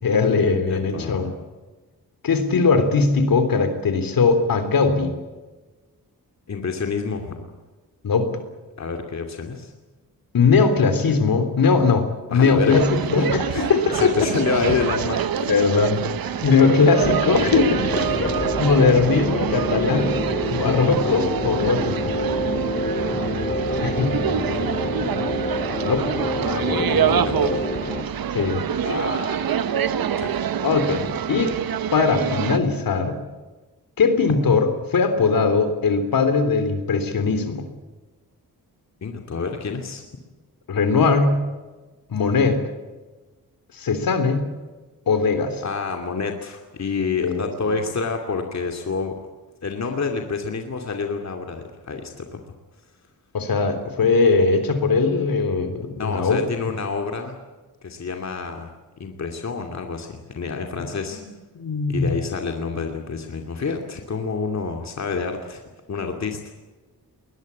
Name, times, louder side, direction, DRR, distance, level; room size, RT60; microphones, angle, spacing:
voice 1, 0.0-1.3 2.2-5.1 8.0-8.3 10.3-13.3 13.6-14.3 15.5-16.0 16.4-17.9 18.6-20.1 20.5-22.1 23.8-24.7 25.8-26.1 28.3-28.6 30.6-31.5 31.9-33.2 34.0-37.7 40.7-41.4 42.1-42.6 43.8-44.5 45.1-45.6 47.2-47.5 53.3-56.4 60.8-60.9 61.2-61.3 61.6-62.2, left 4 dB, 70° left, 9 dB, 3.6 m, -20 dB
voice 2, 0.7-1.3 6.5-7.4 8.8-9.7 12.3-12.8 13.1-15.5 16.6-16.7 17.9-18.3 23.6-23.8 24.5-24.6 26.4-27.6 28.8-29.6 30.2-30.4 39.0-40.0 45.6-49.1 49.6-52.4 56.0-57.4 57.8-58.7 59.0-61.2 61.9-65.6 65.9-66.4, left 4 dB, 50° left, 3 dB, 2.6 m, -28 dB
sound 1, 12.7-32.6, right 8 dB, 75° right, 1.1 m, -26 dB
sound 2, 17.0-28.0, left 2 dB, 25° left, 2.6 m, -27 dB
21.0 x 21.0 x 8.4 m, 1.2 s
wide cardioid pair, 120°, 36 cm